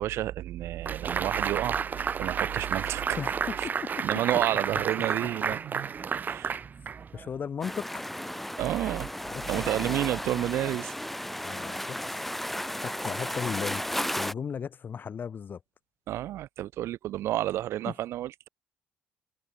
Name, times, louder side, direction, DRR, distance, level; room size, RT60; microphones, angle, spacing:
voice 1, 0.0-1.8 2.2-3.2 3.6-3.7 4.0-6.6 8.6-9.1 9.5-10.9 16.1-18.5, right 14 dB, 70° right, 0.6 m, -30 dB
sound 1, 0.9-7.3, right 6 dB, 40° right, 1.4 m, -31 dB
voice 2, 3.6-4.2 7.1-8.1 9.3-9.6 11.4-12.2 12.8-15.6 17.9-18.0, left 7 dB, 45° left, 1.8 m, -36 dB
sound 2, 7.6-14.3, equal, 5° left, 2.5 m, -34 dB
supercardioid pair, 75°, 5 cm